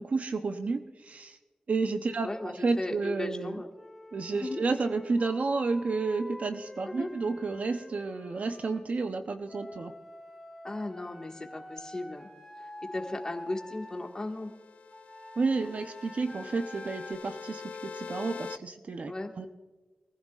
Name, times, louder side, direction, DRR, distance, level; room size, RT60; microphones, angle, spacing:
voice 1, 0.0-1.4 1.7-3.6 4.1-9.9 15.4-19.1 19.4-19.5, right 4 dB, 55° right, 7 dB, 0.7 m, -31 dB
voice 2, 2.2-3.7 4.4-4.6 7.0-7.1 10.6-12.3 12.6-14.5 15.6-15.7 19.1-19.3, left 2 dB, 25° left, 2 dB, 1.7 m, -36 dB
Wind instrument woodwind instrument, 3.7-8.8 9.5-14.1 14.9-17.1, left 1 dB, ahead, 2.6 m, -48 dB
sound 1, 13.6-18.6, left 5 dB, 60° left, 0.5 m, -44 dB
23.5 x 15.0 x 2.4 m, 1.3 s
wide cardioid pair, 125°, 3 cm